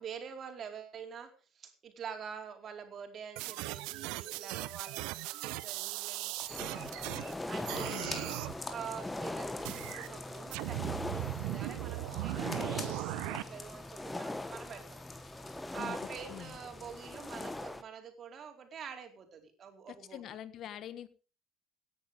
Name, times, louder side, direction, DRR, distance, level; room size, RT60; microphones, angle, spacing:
voice 1, 0.0-8.2 8.7-15.0 15.7-20.2, right 7 dB, 45° right, 5 dB, 4.5 m, -46 dB
sound 1, 3.4-7.3 7.6-8.5 9.6-10.1 10.5-13.4, right 20 dB, 70° right, 0.8 m, -38 dB
sound 2, 6.4-17.6, left 3 dB, 25° left, 3.9 m, -49 dB
sound 3, 6.5-17.8, left 1 dB, 10° left, 1.6 m, -41 dB
voice 2, 7.9-8.3 15.8-16.5 19.9-21.1, left 11 dB, 55° left, 15 dB, 1.4 m, -45 dB
17.5 x 11.0 x 5.1 m, 0.35 s
hypercardioid pair, 65°, 0 cm